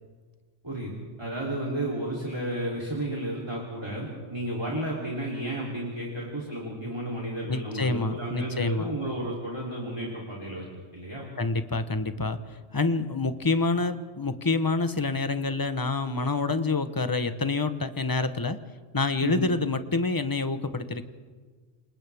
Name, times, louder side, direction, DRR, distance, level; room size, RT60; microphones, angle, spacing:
voice 1, 1.2-10.7 10.9-11.3 19.2-19.5, right 1 dB, 20° right, -4 dB, 3.1 m, -32 dB
voice 2, 7.5-8.9 11.4-12.4 12.7-18.6 18.9-21.0, left 3 dB, 20° left, 10 dB, 0.8 m, -27 dB
28.5 x 26.5 x 3.5 m, 1.5 s
omnidirectional pair, 1.3 m